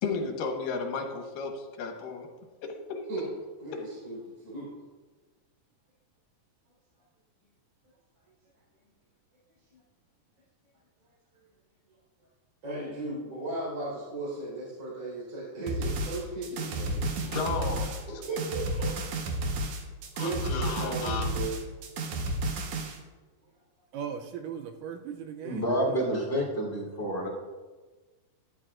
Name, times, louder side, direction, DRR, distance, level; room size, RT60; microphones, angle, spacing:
voice 1, 0.0-2.3 2.6-3.0 3.7-3.9 17.2-18.2 20.1-21.3, left 4 dB, 80° left, 2 dB, 2.9 m, -34 dB
voice 2, 3.6-4.7 9.7-9.8 12.6-17.3 18.1-19.1 20.2-21.6, right 2 dB, 35° right, -8 dB, 4.6 m, -36 dB
sound 1, 15.7-23.0, right 1 dB, 65° right, 2.1 m, -32 dB
voice 3, 23.9-26.0, right 7 dB, 85° right, 5 dB, 2.2 m, -38 dB
voice 4, 25.4-27.3, equal, 20° left, -4 dB, 3.4 m, -29 dB
12.5 x 12.0 x 2.5 m, 1.3 s
omnidirectional pair, 3.9 m